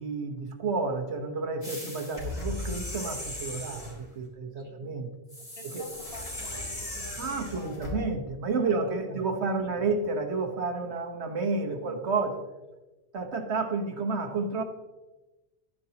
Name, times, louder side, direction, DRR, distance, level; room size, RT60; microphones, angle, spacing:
voice 1, 0.0-5.1 5.6-5.8 7.2-12.4 13.1-14.6, right 4 dB, 85° right, 3 dB, 1.5 m, -30 dB
sound 1, 1.6-4.0 5.3-8.0, left 2 dB, 40° left, 3.0 m, -37 dB
voice 2, 4.6-4.9 5.6-8.1 8.6-9.0 9.6-9.7 11.7-12.0, left 2 dB, 60° left, 0 dB, 2.1 m, -48 dB
12.0 x 9.7 x 2.9 m, 1.1 s
omnidirectional pair, 1.1 m